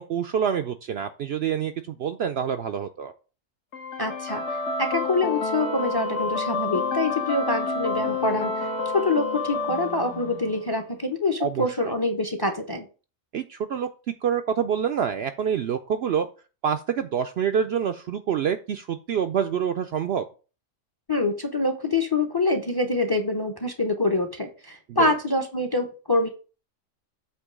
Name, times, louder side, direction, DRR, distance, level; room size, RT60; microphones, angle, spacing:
voice 1, 0.0-3.1 11.4-11.9 13.3-13.9 14.2-16.3 16.6-20.2 24.9-25.1, right 8 dB, 65° right, 8 dB, 0.7 m, -26 dB
sound 1, 3.7-10.7, left 3 dB, 60° left, 1.4 m, -29 dB
voice 2, 4.0-4.4 4.8-8.7 8.9-12.9 21.1-26.3, left 2 dB, 20° left, 6 dB, 0.7 m, -25 dB
8.2 x 3.0 x 6.1 m, 0.35 s
omnidirectional pair, 1.4 m